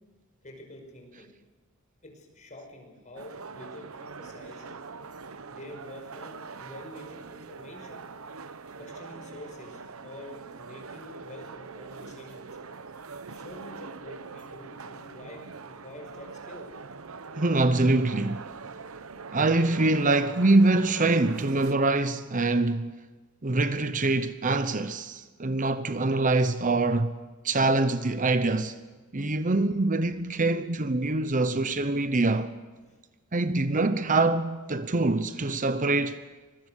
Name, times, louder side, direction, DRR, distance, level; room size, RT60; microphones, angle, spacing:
voice 1, 0.4-1.3 2.0-4.7 5.5-8.0 8.8-12.5 13.3-16.7, left 1 dB, 35° left, 5.5 m, -47 dB
sound 1, 3.2-21.8, right 4 dB, 80° right, 0.9 m, -43 dB
voice 2, 17.4-18.5 19.3-23.0 23.4-27.1 27.4-28.7 29.1-32.5 33.3-36.2, right 2 dB, 40° right, 0.9 m, -24 dB
24.5 x 22.0 x 6.6 m
head